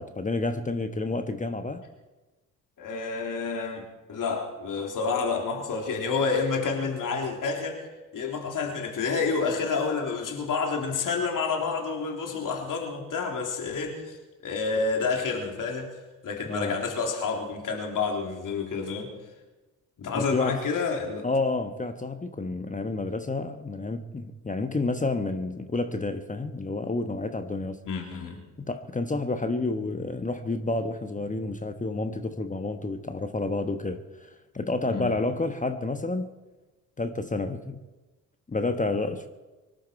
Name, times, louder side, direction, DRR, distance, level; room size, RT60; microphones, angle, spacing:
voice 1, 0.0-1.8 16.5-16.8 20.1-20.6 21.2-27.8 28.6-34.3 34.5-36.3 37.0-37.8 38.5-39.3, left 3 dB, 15° left, 8 dB, 1.3 m, -30 dB
voice 2, 2.8-7.8 8.1-14.2 14.4-15.9 16.2-19.1 20.0-21.3 27.9-28.4 34.9-35.1, left 4 dB, 45° left, 1 dB, 3.6 m, -29 dB
24.5 x 11.5 x 4.6 m, 1.2 s
figure-of-eight pair, 45°, 43 cm